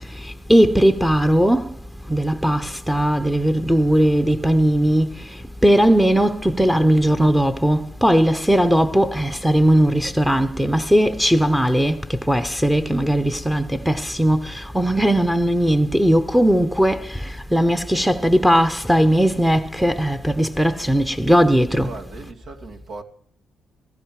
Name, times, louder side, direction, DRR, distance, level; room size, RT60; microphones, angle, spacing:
voice 1, 0.5-1.7 2.1-5.1 5.6-12.0 12.3-17.2 17.5-21.9, equal, 5° right, 0.9 m, -18 dB
voice 2, 21.7-23.0, right 3 dB, 75° right, 2.5 m, -38 dB
15.5 x 15.5 x 4.9 m
cardioid pair, 90°, 0 cm